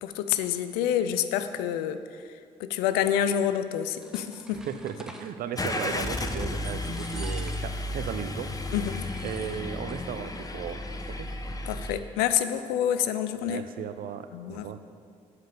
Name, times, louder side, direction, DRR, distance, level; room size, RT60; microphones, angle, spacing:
voice 1, 0.0-2.0 2.6-4.6 8.7-9.0 11.7-13.6 14.3-14.6, left 10 dB, 85° left, 11 dB, 0.5 m, -27 dB
sound 1, 3.7-5.3 5.9-6.4 6.6-7.9 8.2-8.3 8.7-10.1 10.3-10.4 10.7-11.2, equal, 5° right, 1.1 m, -47 dB
voice 2, 4.5-8.5 9.2-11.3 13.4-14.8, right 9 dB, 65° right, 10 dB, 0.6 m, -36 dB
Car / Engine starting, 5.6-12.0, left 2 dB, 25° left, 0.9 m, -33 dB
8.0 x 5.1 x 7.0 m, 2.2 s
hypercardioid pair, 50°, 16 cm